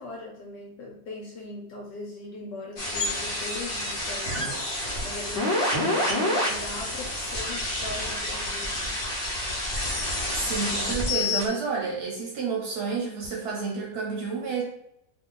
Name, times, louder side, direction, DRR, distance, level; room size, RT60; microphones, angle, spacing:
voice 1, 0.0-9.0, left 2 dB, 80° left, -1 dB, 1.2 m, -40 dB
sound 1, 2.8-11.4, left 1 dB, 50° left, 0.9 m, -28 dB
voice 2, 10.3-14.6, right 5 dB, 70° right, -1 dB, 1.1 m, -30 dB
2.8 x 2.3 x 3.7 m, 0.78 s
omnidirectional pair, 1.9 m